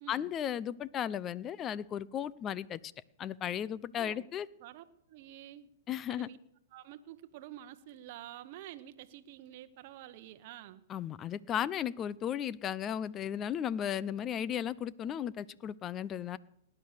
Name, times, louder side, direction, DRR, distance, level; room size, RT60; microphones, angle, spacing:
voice 1, 0.1-2.9 3.2-4.5 5.9-6.3 10.9-16.4, left 9 dB, 30° left, 21 dB, 0.5 m, -35 dB
voice 2, 5.1-5.7 6.1-6.4 6.7-10.8, right 13 dB, 50° right, 9 dB, 0.9 m, -49 dB
18.5 x 9.7 x 6.6 m, 0.76 s
hypercardioid pair, 115°, 0 cm